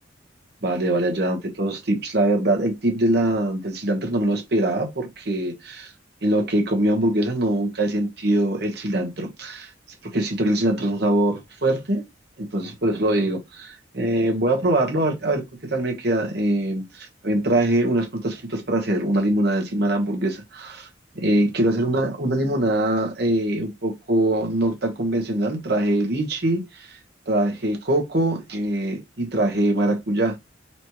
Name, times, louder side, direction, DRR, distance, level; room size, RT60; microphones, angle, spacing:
voice 1, 0.6-5.9 6.2-9.7 10.0-12.1 12.4-20.9 21.1-27.0 27.3-30.4, right 1 dB, 60° right, 1.2 m, -23 dB
4.2 x 3.1 x 3.0 m
head